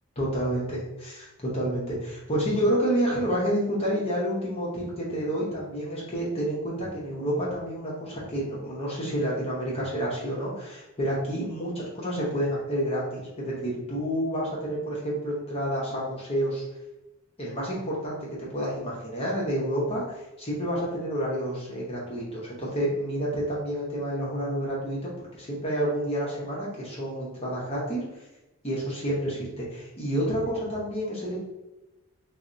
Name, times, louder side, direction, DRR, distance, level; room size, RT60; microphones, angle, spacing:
voice 1, 0.2-16.6 17.4-28.0 28.6-31.4, equal, 25° left, -5 dB, 0.8 m, -29 dB
4.1 x 2.0 x 2.5 m, 0.99 s
head